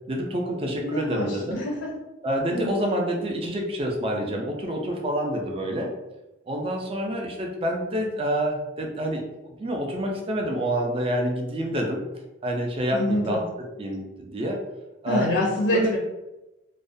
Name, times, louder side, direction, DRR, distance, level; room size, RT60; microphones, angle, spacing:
voice 1, 0.1-1.6 2.2-5.9 6.5-9.3 9.6-12.0 12.4-13.4 13.8-14.6 15.0-15.3 15.7-16.0, equal, 30° right, 0 dB, 0.4 m, -27 dB
voice 2, 0.8-1.9 2.5-2.7 12.9-13.4 15.1-16.0, left 1 dB, 70° left, -3 dB, 0.5 m, -26 dB
2.3 x 2.1 x 2.5 m, 1.0 s
head